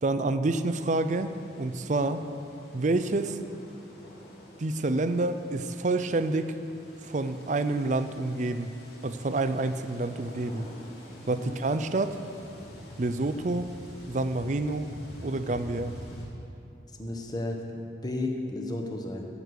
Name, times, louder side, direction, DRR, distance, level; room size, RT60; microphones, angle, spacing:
voice 1, 0.0-2.2 2.7-3.4 4.6-6.5 7.0-8.7 9.0-10.7 11.3-12.2 13.0-13.7 14.1-14.9 15.2-15.9, right 2 dB, 40° right, 11 dB, 0.5 m, -28 dB
sound 1, 0.6-16.2, left 1 dB, 60° left, 3.2 m, -47 dB
voice 2, 17.0-19.3, left 2 dB, 20° left, 2 dB, 1.1 m, -33 dB
13.5 x 6.6 x 8.2 m, 2.8 s
head